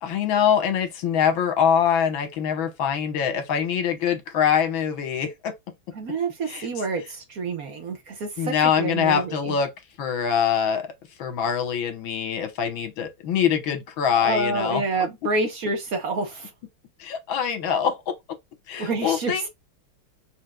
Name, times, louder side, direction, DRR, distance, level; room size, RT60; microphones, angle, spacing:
voice 1, 0.0-5.5 6.5-6.7 8.4-9.7 10.0-10.9 11.2-14.8 17.0-18.2 18.7-19.5, left 8 dB, 80° left, 1.8 m, -24 dB
voice 2, 5.9-9.6 14.1-16.5 18.8-19.5, right 3 dB, 55° right, 1.3 m, -28 dB
4.9 x 4.5 x 2.2 m
omnidirectional pair, 2.2 m